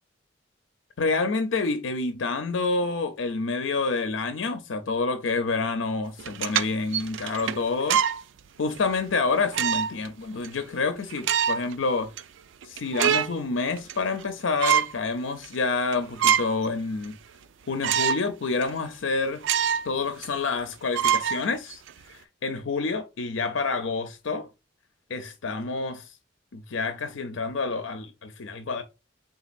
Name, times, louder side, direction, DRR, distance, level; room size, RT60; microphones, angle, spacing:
voice 1, 1.0-8.0 8.6-12.1 12.6-17.2 17.7-19.4 19.8-24.5 25.1-26.1 26.5-28.8, left 4 dB, 90° left, 0.6 m, -28 dB
sound 1, 6.2-8.2 8.8-8.9 9.5-10.1 10.4-10.5 11.1-11.7 12.2-12.3 12.6-13.4 13.8-14.3 14.6-15.0 15.4-15.5 15.9-16.7 17.0-17.1 17.8-18.3 18.6-18.7 19.4-19.9 20.2-20.3 20.9-21.9, right 9 dB, 75° right, 0.4 m, -25 dB
4.0 x 3.9 x 2.5 m
head